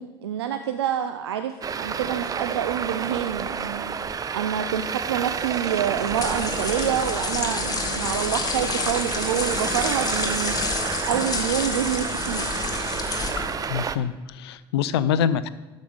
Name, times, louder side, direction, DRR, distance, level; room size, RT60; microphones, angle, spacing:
voice 1, 0.0-3.9 4.3-10.5 11.0-12.5, right 9 dB, 80° right, 7 dB, 0.6 m, -27 dB
Traffic noise roadway noise, 1.6-14.0, right 6 dB, 25° right, 0.6 m, -30 dB
sound 1, 5.9-13.7, left 4 dB, 30° left, 1.5 m, -29 dB
voice 2, 13.7-15.5, left 8 dB, 75° left, 15 dB, 0.5 m, -25 dB
12.5 x 5.2 x 5.5 m, 1.2 s
hypercardioid pair, 70°, 14 cm